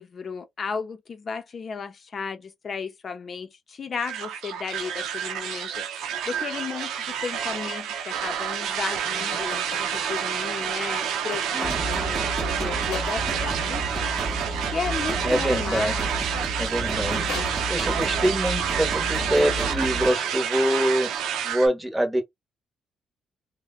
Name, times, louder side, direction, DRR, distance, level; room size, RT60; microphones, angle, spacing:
voice 1, 0.0-14.1 14.7-16.0 17.0-17.5, left 5 dB, 45° left, 0.6 m, -34 dB
sound 1, 4.0-21.7, right 8 dB, 90° right, 0.6 m, -29 dB
sound 2, 9.1-12.1 12.9-13.6 16.2-16.3 16.6-18.2, left 6 dB, 80° left, 0.7 m, -41 dB
sound 3, 11.6-20.1, right 2 dB, 35° right, 0.8 m, -31 dB
voice 2, 15.2-16.0 16.5-17.2 17.7-21.1 21.4-22.2, equal, 10° right, 1.0 m, -24 dB
3.2 x 2.1 x 2.3 m
cardioid pair, 90°, 0 cm